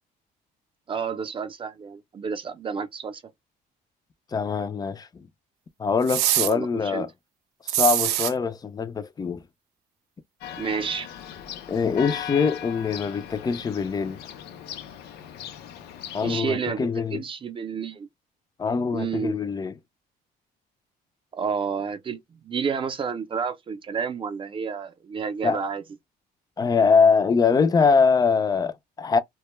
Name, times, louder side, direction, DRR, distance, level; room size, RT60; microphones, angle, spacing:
voice 1, 0.9-3.2 6.4-7.1 10.6-11.1 16.2-18.1 18.9-19.4 21.3-25.8, right 6 dB, 30° right, 0.5 m, -30 dB
voice 2, 4.3-5.3 5.8-7.1 7.6-9.4 11.7-14.2 16.1-17.2 18.6-19.7 25.4-25.6 26.6-29.2, left 5 dB, 25° left, 0.4 m, -23 dB
sound 1, 6.1-6.5 7.7-8.3, right 13 dB, 85° right, 0.4 m, -23 dB
Church bell, 10.4-16.4, left 10 dB, 75° left, 0.6 m, -38 dB
2.2 x 2.0 x 3.0 m
cardioid pair, 110°, 17 cm